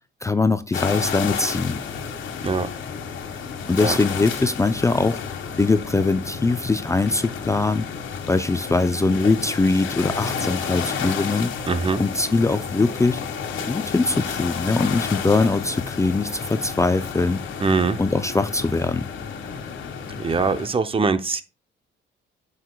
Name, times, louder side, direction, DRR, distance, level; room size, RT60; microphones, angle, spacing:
voice 1, 0.2-1.8 3.7-5.2 5.6-7.8 8.3-11.5 12.0-13.2 13.7-17.4 18.0-19.1, left 3 dB, 15° left, 0.5 m, -22 dB
sound 1, 0.7-20.7, left 6 dB, 75° left, 1.4 m, -31 dB
voice 2, 11.7-12.0 17.6-18.0 20.2-21.4, right 4 dB, 30° right, 0.6 m, -22 dB
9.7 x 6.6 x 2.3 m
cardioid pair, 90°, 20 cm